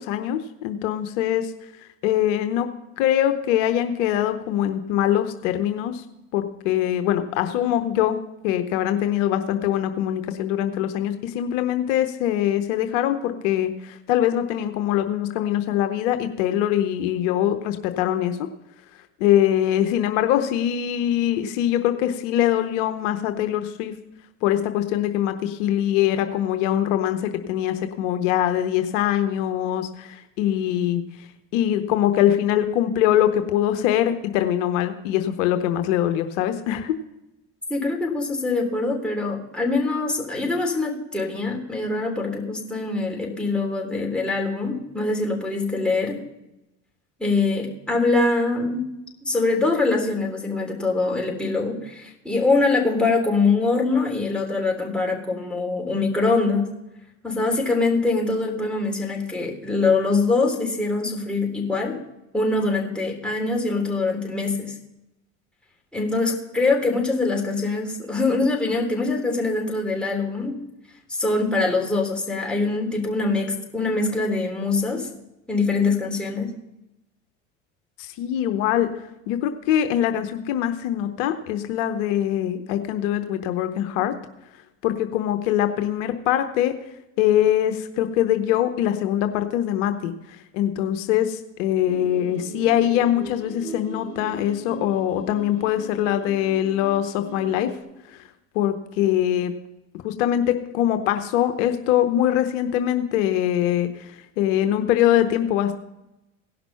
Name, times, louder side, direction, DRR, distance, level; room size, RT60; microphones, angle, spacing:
voice 1, 0.0-1.5 1.8-2.7 3.0-6.0 6.3-8.2 8.4-18.4 19.2-23.9 24.4-36.9 78.0-78.9 79.3-84.1 84.8-86.7 87.2-97.7 98.1-98.2 98.5-99.5 100.0-105.7, left 11 dB, 75° left, 8 dB, 0.9 m, -23 dB
voice 2, 37.7-46.2 47.2-48.9 49.2-56.7 57.2-62.0 62.3-64.8 65.9-70.6 71.1-75.1 75.5-76.5, left 3 dB, 5° left, -1 dB, 3.7 m, -23 dB
sound 1, 91.9-97.8, right 3 dB, 40° right, 3.6 m, -39 dB
17.0 x 6.0 x 5.6 m, 0.91 s
hypercardioid pair, 75°, 36 cm